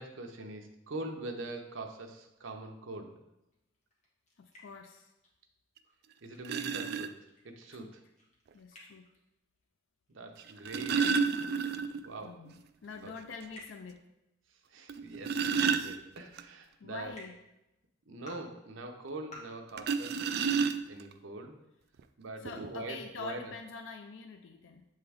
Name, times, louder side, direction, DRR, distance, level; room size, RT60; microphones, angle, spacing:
voice 1, 0.0-3.1 6.2-7.2 7.4-8.0 10.1-11.1 12.0-12.4 13.0-13.1 14.5-17.1 18.1-20.5 20.9-21.6 22.2-23.5, right 2 dB, 80° right, 4 dB, 0.8 m, -43 dB
sound 1, 3.5-5.4 5.7-9.6 9.9-11.6 11.9-12.0 12.3-12.4 13.5-13.6 15.8-15.9 17.1-17.2 18.0-18.3 19.2-19.4, left 1 dB, 35° left, 1.5 m, -54 dB
voice 2, 4.4-5.1 7.7-7.9 8.5-9.1 12.2-14.1 16.8-17.4 22.4-24.9, left 5 dB, 75° left, 6 dB, 0.4 m, -46 dB
sound 2, 5.8-5.9 6.4-7.1 8.5-8.6 10.4-12.1 12.5-12.6 13.0-13.1 13.6-13.7 14.9-16.4 19.8-21.1 22.0-22.1 22.5-22.7, right 6 dB, 55° right, 0.3 m, -30 dB
7.7 x 3.7 x 3.4 m, 0.90 s
head